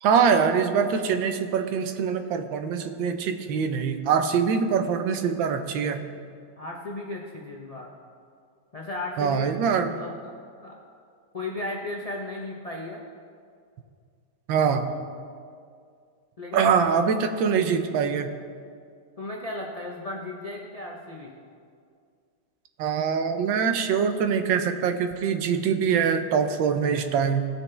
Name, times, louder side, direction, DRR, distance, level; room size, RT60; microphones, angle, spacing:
voice 1, 0.0-6.0 9.2-9.9 14.5-14.8 16.5-18.3 22.8-27.4, right 6 dB, 80° right, 8 dB, 1.4 m, -23 dB
voice 2, 6.6-7.9 8.7-9.5 9.9-10.3 10.6-10.8 11.3-13.0 16.4-16.7 19.2-21.3, left 2 dB, 70° left, -2 dB, 0.3 m, -35 dB
18.0 x 6.2 x 3.3 m, 2.2 s
omnidirectional pair, 2.2 m